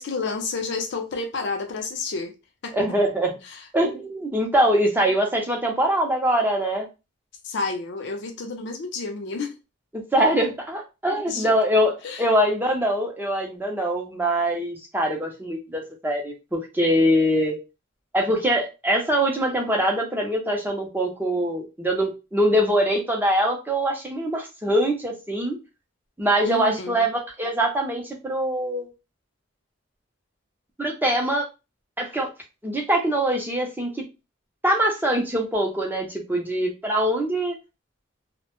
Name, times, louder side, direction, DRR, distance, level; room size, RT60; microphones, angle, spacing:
voice 1, 0.0-2.3 2.6-2.8 3.5-3.6 7.4-9.5 11.3-11.5 12.0-12.3 26.4-27.1, left 4 dB, 60° left, 0.5 m, -30 dB
voice 2, 2.7-3.4 3.7-6.9 9.9-17.6 18.1-25.6 26.2-28.9 30.8-31.5 32.0-32.3 32.6-34.0 34.6-37.6, right 1 dB, 10° right, 0.5 m, -23 dB
2.0 x 2.0 x 2.9 m
head